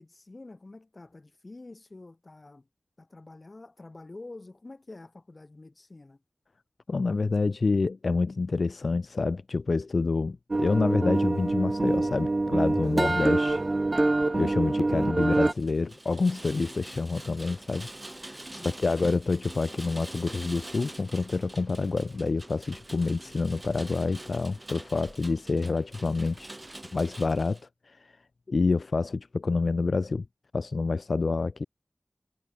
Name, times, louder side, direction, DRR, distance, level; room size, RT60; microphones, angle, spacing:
voice 1, 0.0-2.7 3.0-6.2 18.5-18.7, left 2 dB, 45° left, 1.8 m, -47 dB
voice 2, 6.9-13.6 14.4-26.5 26.9-27.6 27.9-28.1 28.5-30.2 30.5-31.6, left 3 dB, 75° left, 0.6 m, -28 dB
sound 1, 10.5-15.5, right 2 dB, 45° right, 0.3 m, -25 dB
Rain, 15.3-27.6, right 1 dB, 25° right, 1.2 m, -45 dB
wide cardioid pair, 70°, 0 cm